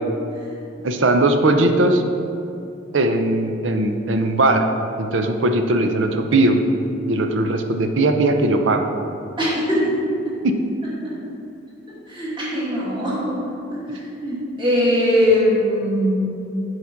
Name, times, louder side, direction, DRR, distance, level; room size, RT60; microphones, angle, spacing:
voice 1, 0.8-2.0 2.9-4.7 5.0-6.6 7.1-8.8 10.4-10.5, right 2 dB, 75° right, 6 dB, 0.7 m, -19 dB
voice 2, 9.4-10.0 10.2-10.3 11.0-11.1 12.1-13.3 13.7-16.2, equal, 25° right, -8 dB, 2.1 m, -21 dB
8.2 x 4.9 x 5.8 m, 2.7 s
head